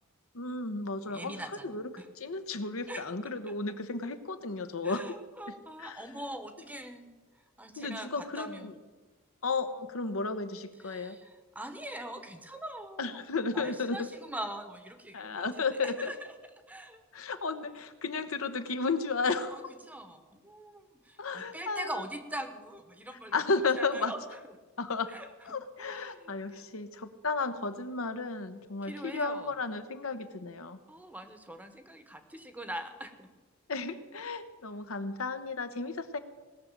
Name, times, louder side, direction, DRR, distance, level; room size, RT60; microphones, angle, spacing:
voice 1, 0.3-5.1 5.5-6.1 7.8-8.7 9.4-11.2 13.0-14.1 15.1-16.1 17.1-19.6 21.2-22.0 23.3-24.1 24.8-25.1 25.4-30.8 33.7-36.2, left 4 dB, 70° left, 9 dB, 0.9 m, -33 dB
voice 2, 1.1-2.1 2.9-3.0 3.5-3.6 4.8-7.1 7.6-8.7 10.8-15.5 15.8-16.1 16.7-17.0 19.5-23.4 23.8-24.2 25.1-25.3 25.8-26.6 28.9-29.5 30.9-33.3, right 1 dB, 5° right, 8 dB, 1.0 m, -42 dB
18.5 x 6.6 x 8.8 m, 1.3 s
head